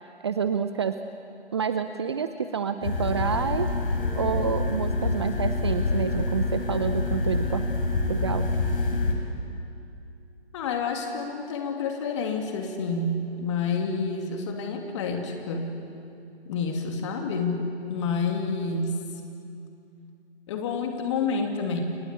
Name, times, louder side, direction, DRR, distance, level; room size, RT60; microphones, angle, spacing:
voice 1, 0.2-1.0 1.5-7.7 8.1-8.5, right 6 dB, 25° right, 9 dB, 0.7 m, -28 dB
sound 1, 2.8-9.1, left 3 dB, 55° left, 5.4 m, -26 dB
voice 2, 10.5-15.7 16.5-17.6 17.9-19.0 20.5-21.8, left 4 dB, 25° left, 3 dB, 2.9 m, -29 dB
29.5 x 23.5 x 8.4 m, 2.6 s
figure-of-eight pair, 145°, 33 cm